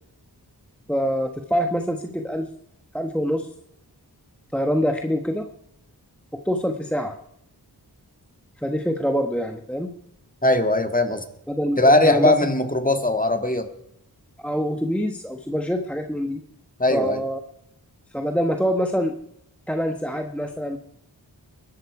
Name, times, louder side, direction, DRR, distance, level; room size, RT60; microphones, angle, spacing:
voice 1, 0.9-2.5 2.9-3.5 4.5-5.5 6.3-7.2 8.6-9.9 11.5-12.3 14.4-16.4 16.9-17.4 18.1-19.1 19.7-20.8, equal, 5° left, 5 dB, 1.1 m, -25 dB
voice 2, 10.4-11.2 11.8-13.7 16.8-17.2, left 1 dB, 20° left, 7 dB, 1.8 m, -19 dB
21.5 x 12.0 x 4.8 m, 0.77 s
wide cardioid pair, 50°, 40 cm